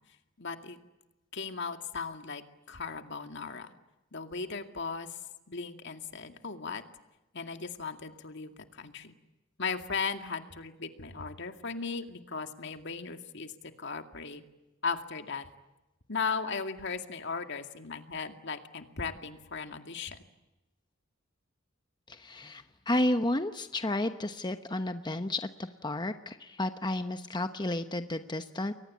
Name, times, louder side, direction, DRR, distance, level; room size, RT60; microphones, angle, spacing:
voice 1, 0.4-0.8 1.3-3.7 4.1-5.2 5.5-6.8 7.3-9.1 9.6-14.4 14.8-15.5 16.1-20.2, left 5 dB, 65° left, 7 dB, 2.2 m, -37 dB
voice 2, 22.1-28.7, left 1 dB, 20° left, 8 dB, 1.0 m, -32 dB
29.5 x 23.0 x 8.6 m, 1.0 s
head